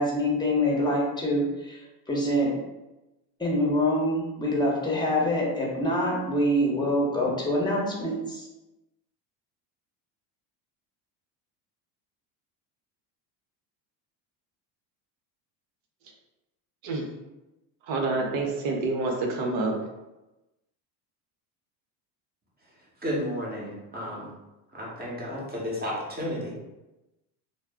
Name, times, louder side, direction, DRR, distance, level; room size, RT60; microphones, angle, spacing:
voice 1, 0.0-2.5 3.4-8.5, left 1 dB, 10° left, -3 dB, 0.8 m, -25 dB
voice 2, 17.9-19.8, right 3 dB, 65° right, 1 dB, 0.8 m, -27 dB
voice 3, 23.0-24.3 24.7-26.7, equal, 20° right, -4 dB, 0.9 m, -32 dB
2.2 x 2.0 x 3.4 m, 1.0 s
supercardioid pair, 90°, 50 cm